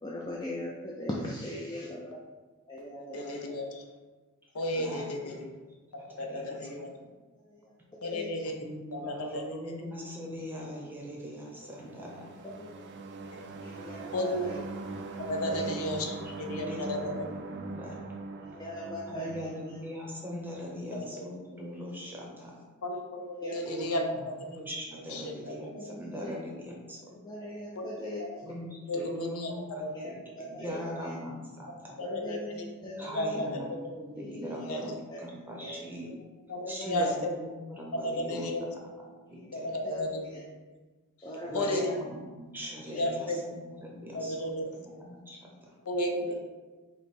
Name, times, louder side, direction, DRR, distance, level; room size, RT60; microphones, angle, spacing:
voice 1, 0.0-2.1 2.7-3.6 4.9-5.0 7.3-7.7 8.0-8.4 9.3-9.4 12.0-12.1 12.4-12.9 13.6-14.6 15.4-15.7 18.4-19.8 23.4-23.6 25.4-26.4 27.0-28.2 28.5-28.6 28.9-29.1 29.9-31.1 32.0-33.5 34.2-35.2 35.6-35.9 36.6-37.3 39.3-40.4 41.2-42.0 42.9-43.3 46.3-46.4, left 1 dB, 20° left, -4 dB, 0.4 m, -41 dB
voice 2, 3.1-3.7 4.5-5.5 6.2-6.9 8.0-8.5 8.9-9.4 13.3-13.4 14.1-14.5 15.2-17.2 22.8-24.1 25.1-25.5 27.8-27.9 28.9-29.5 29.8-29.9 32.0-32.4 33.1-33.6 34.6-34.8 36.5-37.3 38.0-38.7 39.5-40.4 41.5-41.9 43.0-43.4 44.1-44.6 45.9-46.3, left 1 dB, 70° left, 3 dB, 0.6 m, -33 dB
voice 3, 4.7-5.3 6.1-6.9 8.6-12.3 15.8-18.0 19.1-22.6 23.6-27.2 28.4-30.2 30.5-32.0 33.0-36.1 36.7-38.7 39.3-39.7 41.5-45.7, equal, 10° right, -3 dB, 0.7 m, -41 dB
sound 1, 11.6-20.3, right 3 dB, 50° right, 0.4 m, -41 dB
5.0 x 2.1 x 4.2 m, 1.3 s
head